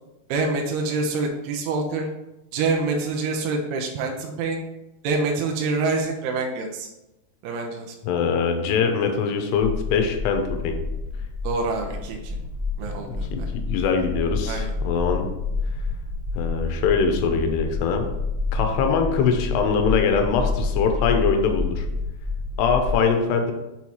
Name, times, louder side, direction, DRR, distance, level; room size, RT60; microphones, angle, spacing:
voice 1, 0.3-2.1 2.5-4.6 5.0-6.9 7.4-7.9 11.4-12.4 12.8-13.5 14.5-14.7, right 3 dB, 80° right, 1 dB, 2.6 m, -26 dB
voice 2, 8.0-10.8 13.1-15.3 16.3-18.1 18.5-21.9 22.6-23.5, left 6 dB, 85° left, 5 dB, 2.8 m, -23 dB
sound 1, 9.5-23.0, left 3 dB, 45° right, 1.5 m, -29 dB
7.1 x 4.7 x 4.2 m, 0.96 s
omnidirectional pair, 4.9 m